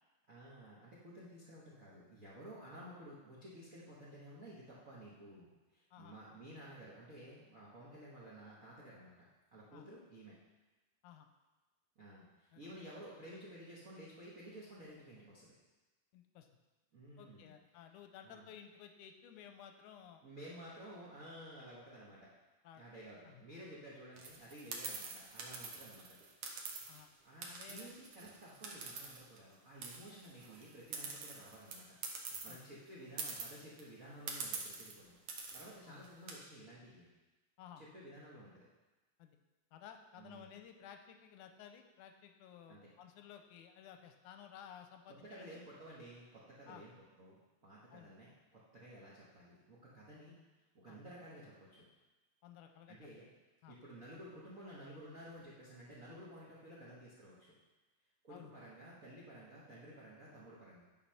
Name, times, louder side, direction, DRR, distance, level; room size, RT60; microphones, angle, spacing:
voice 1, 0.3-10.4 11.9-15.5 16.9-17.5 18.2-18.5 20.2-22.3 22.7-26.2 27.2-37.1 37.8-38.7 40.2-40.6 42.7-42.9 45.2-47.4 47.6-50.3 50.7-51.9 52.9-53.3 53.7-57.6 58.2-60.8, right 1 dB, 85° right, -6 dB, 0.7 m, -53 dB
voice 2, 16.1-16.5 17.2-20.2 22.6-22.8 23.2-23.4 26.9-27.1 27.5-27.9 32.5-32.6 35.9-36.1 37.6-37.8 39.2-39.4 39.7-45.6 46.7-46.8 47.9-48.1 50.9-51.0 52.4-53.0 53.6-53.8 58.3-58.5, left 9 dB, 80° left, 6 dB, 1.9 m, -55 dB
sound 1, 24.2-27.0 27.4-29.5 29.8-32.6 32.9-33.0 33.2-33.8 34.3-34.9 35.3-35.7 36.0-36.3, right 5 dB, 65° right, 1.7 m, -45 dB
9.7 x 4.7 x 5.7 m, 1.2 s
omnidirectional pair, 3.9 m